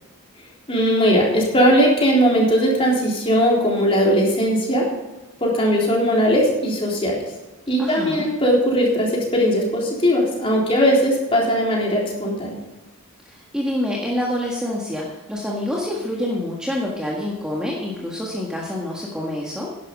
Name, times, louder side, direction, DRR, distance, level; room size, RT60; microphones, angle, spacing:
voice 1, 0.7-4.9 5.4-7.3 7.7-12.5, equal, 25° left, -3 dB, 3.7 m, -19 dB
voice 2, 7.8-8.3 13.2-19.7, left 1 dB, 5° right, -4 dB, 1.6 m, -27 dB
11.5 x 11.0 x 5.3 m, 1.1 s
head